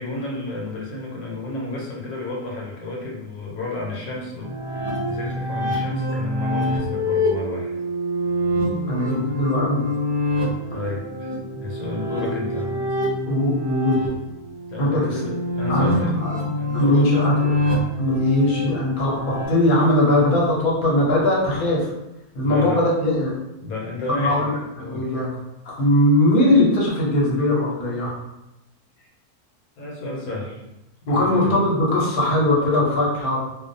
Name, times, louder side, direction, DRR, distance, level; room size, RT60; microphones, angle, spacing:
voice 1, 0.0-7.7 10.7-13.0 14.7-16.1 16.4-17.1 22.4-22.8 23.6-25.2 29.8-30.6 31.0-31.5, left 2 dB, 75° left, -3 dB, 1.0 m, -31 dB
sound 1, 4.4-19.5, left 1 dB, 35° right, 0.4 m, -25 dB
voice 2, 8.9-9.8 13.3-14.0 14.8-15.2 15.7-15.9 16.2-16.4 16.7-17.5 18.0-21.9 22.3-23.4 24.2-24.5 24.8-25.3 25.6-28.1 31.1-33.4, left 1 dB, 45° left, -4 dB, 0.7 m, -20 dB
2.4 x 2.2 x 2.6 m, 0.91 s
omnidirectional pair, 1.6 m